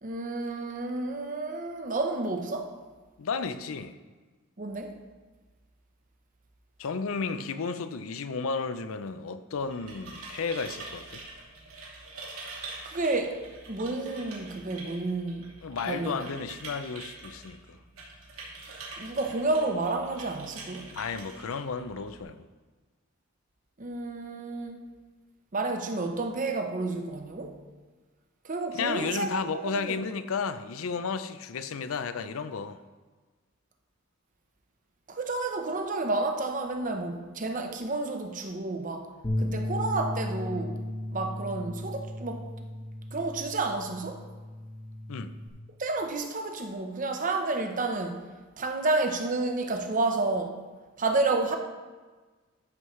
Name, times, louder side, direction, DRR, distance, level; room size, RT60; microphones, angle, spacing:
voice 1, 0.0-2.7 4.6-5.0 12.8-13.4 13.7-15.5 15.8-16.2 19.0-20.9 23.8-24.8 25.5-27.6 28.4-29.9 35.1-39.1 39.4-40.9 41.1-42.4 43.1-44.2 45.8-48.3 48.6-50.6 51.0-51.6, right 3 dB, 40° right, 0.7 m, -30 dB
voice 2, 3.2-4.0 6.8-11.2 15.6-17.8 20.9-22.4 28.7-32.8 45.1-45.3, left 5 dB, 75° left, 0.5 m, -33 dB
sound 1, 9.5-22.2, right 3 dB, 85° right, 2.7 m, -45 dB
Bass guitar, 39.2-45.5, left 1 dB, 25° left, 0.9 m, -35 dB
13.5 x 6.3 x 3.2 m
head